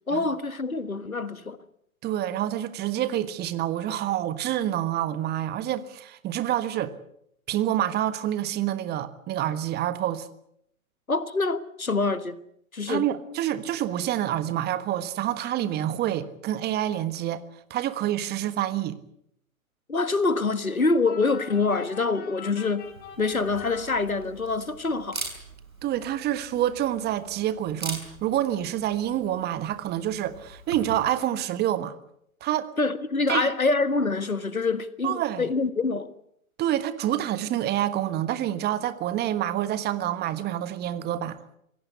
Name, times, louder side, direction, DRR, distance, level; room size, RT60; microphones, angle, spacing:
voice 1, 0.1-1.6 11.1-12.4 12.7-13.1 19.9-22.9 23.2-25.2 32.8-36.1, left 3 dB, 90° left, 1.6 m, -25 dB
voice 2, 2.0-6.9 7.5-10.3 12.9-17.4 17.7-19.0 25.8-32.0 32.4-32.7 33.3-33.5 35.0-35.5 36.6-41.4, right 12 dB, 25° right, 1.4 m, -27 dB
sound 1, 21.1-24.6, left 7 dB, 25° left, 4.3 m, -44 dB
Camera, 22.8-31.1, right 3 dB, 85° right, 5.7 m, -42 dB
25.0 x 17.0 x 8.4 m
figure-of-eight pair, 110°, 41 cm